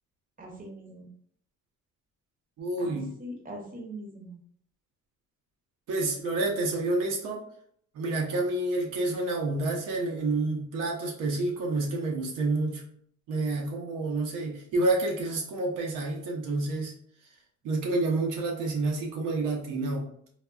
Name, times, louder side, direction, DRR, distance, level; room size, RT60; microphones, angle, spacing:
voice 1, 0.4-1.1 2.8-4.4, right 1 dB, 30° right, 1 dB, 0.8 m, -42 dB
voice 2, 2.6-3.1 5.9-7.5 7.9-12.9 13.3-16.9 17.6-20.1, right 2 dB, 85° right, -1 dB, 0.7 m, -29 dB
3.9 x 2.1 x 2.2 m, 0.64 s
cardioid pair, 90°, 30 cm